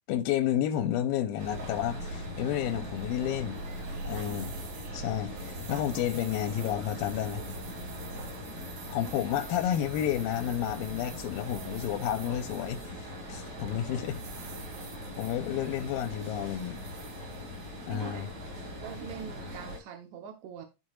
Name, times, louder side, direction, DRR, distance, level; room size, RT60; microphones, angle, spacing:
voice 1, 0.1-3.6 4.0-4.5 4.9-7.4 8.9-14.2 15.2-16.8 17.9-18.3, left 11 dB, 85° left, 2.4 m, -31 dB
sound 1, 1.4-19.8, equal, 40° right, 3.9 m, -40 dB
sound 2, 2.6-18.8, right 6 dB, 90° right, 3.2 m, -51 dB
voice 2, 5.7-6.0 9.0-9.1 17.9-20.6, right 8 dB, 65° right, 1.9 m, -44 dB
13.5 x 4.6 x 2.4 m
omnidirectional pair, 4.1 m